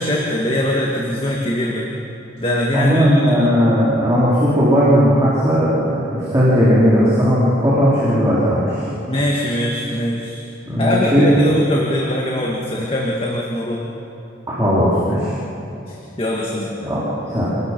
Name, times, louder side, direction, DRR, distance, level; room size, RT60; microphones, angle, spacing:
voice 1, 0.0-1.9 2.4-3.4 9.1-10.4 10.8-13.9 15.9-16.7, left 1 dB, 30° left, -3 dB, 2.0 m, -22 dB
voice 2, 2.7-8.8 10.7-11.4 14.5-15.3 16.8-17.5, equal, 15° right, -9 dB, 3.9 m, -16 dB
28.5 x 19.5 x 6.2 m, 2.9 s
head